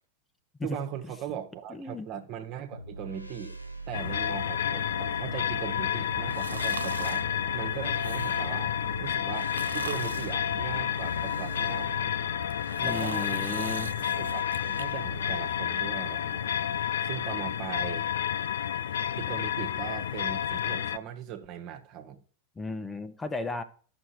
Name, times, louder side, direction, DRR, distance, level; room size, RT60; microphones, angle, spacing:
voice 1, 0.6-3.6 3.9-8.7 9.0-11.9 12.8-16.5 17.0-18.1 19.2-22.2, right 9 dB, 40° right, 1.5 m, -39 dB
voice 2, 1.7-2.1 12.8-13.9 22.6-23.6, left 3 dB, 10° left, 1.1 m, -34 dB
sound 1, 2.7-15.5, right 3 dB, 85° left, 0.8 m, -41 dB
sound 2, 3.9-21.0, left 10 dB, 65° left, 0.5 m, -30 dB
sound 3, 6.3-7.3 7.8-8.6 9.3-10.4 11.0-11.9 12.4-14.9 15.3-15.4, right 6 dB, 70° right, 0.5 m, -41 dB
12.5 x 6.4 x 4.5 m
figure-of-eight pair, 90°, 0 cm